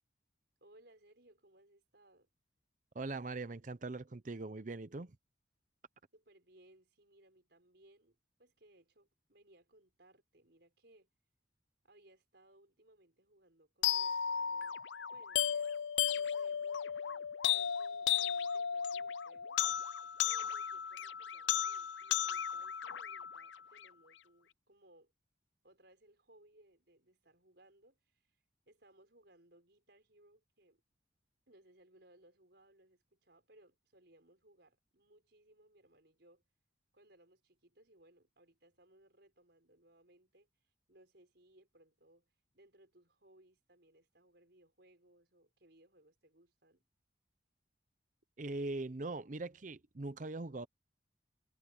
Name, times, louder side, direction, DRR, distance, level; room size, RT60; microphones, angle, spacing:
voice 1, 0.6-2.3 6.1-11.1 11.8-14.8 15.1-19.6 20.3-25.1 25.6-28.3 28.7-30.8 31.5-36.4 36.9-40.5 40.9-46.9, right 1 dB, 60° right, 5.5 m, -65 dB
voice 2, 2.9-5.2 48.4-50.7, right 2 dB, 40° right, 0.7 m, -41 dB
sound 1, 13.8-23.9, left 9 dB, 75° left, 0.5 m, -35 dB
head